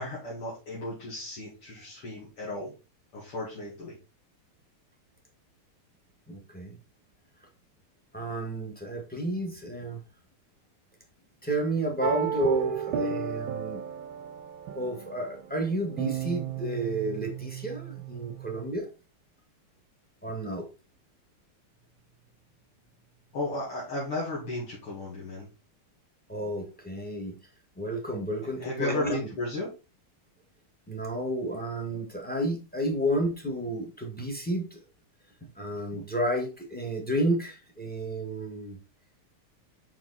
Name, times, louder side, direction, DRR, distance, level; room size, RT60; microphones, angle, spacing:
voice 1, 0.0-2.7 3.1-4.0 23.3-25.5 28.6-29.7, left 2 dB, 85° left, -7 dB, 3.2 m, -34 dB
voice 2, 6.3-6.8 8.1-10.0 11.4-13.8 14.7-18.9 20.2-20.6 26.3-27.4 27.8-29.2 30.9-34.8 35.4-38.8, right 1 dB, 5° left, 2 dB, 1.5 m, -31 dB
sound 1, 12.0-18.7, right 8 dB, 70° right, 1.3 m, -33 dB
5.8 x 4.9 x 4.1 m, 0.31 s
omnidirectional pair, 2.4 m